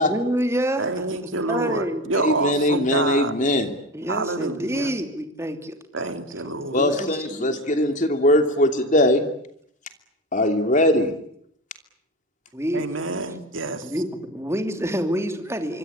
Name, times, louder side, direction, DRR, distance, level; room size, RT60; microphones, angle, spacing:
voice 1, 0.0-0.8 1.1-1.2 1.5-2.0 3.9-5.8 6.4-7.7 12.5-12.9 13.8-15.8, equal, 15° right, 6 dB, 2.9 m, -27 dB
voice 2, 0.8-3.3 4.1-4.9 5.9-6.8 12.7-13.9, right 3 dB, 70° right, 7 dB, 2.7 m, -27 dB
voice 3, 2.2-3.7 6.7-9.2 10.3-11.1, left 1 dB, 40° left, 7 dB, 2.9 m, -20 dB
25.5 x 25.0 x 8.7 m, 0.70 s
head